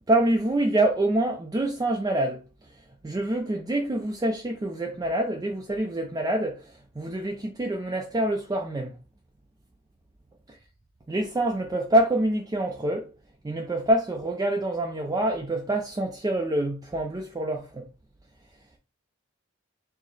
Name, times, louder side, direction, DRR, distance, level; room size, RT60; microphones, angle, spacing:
voice 1, 0.1-2.4 3.0-9.0 11.1-13.1 13.4-17.9, right 1 dB, 20° right, 0.4 m, -26 dB
4.6 x 2.0 x 3.9 m
head